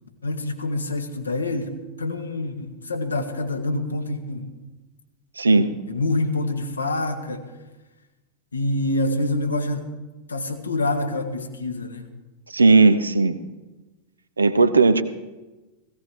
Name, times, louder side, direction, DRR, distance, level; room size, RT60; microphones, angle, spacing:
voice 1, 0.2-4.5 5.5-7.5 8.5-9.9 10.3-12.1, left 2 dB, 75° left, 5 dB, 1.9 m, -26 dB
voice 2, 5.4-5.7 12.5-13.4 14.4-15.0, right 3 dB, 75° right, 11 dB, 0.9 m, -16 dB
17.5 x 16.5 x 4.6 m, 1.1 s
figure-of-eight pair, 90°, 0 cm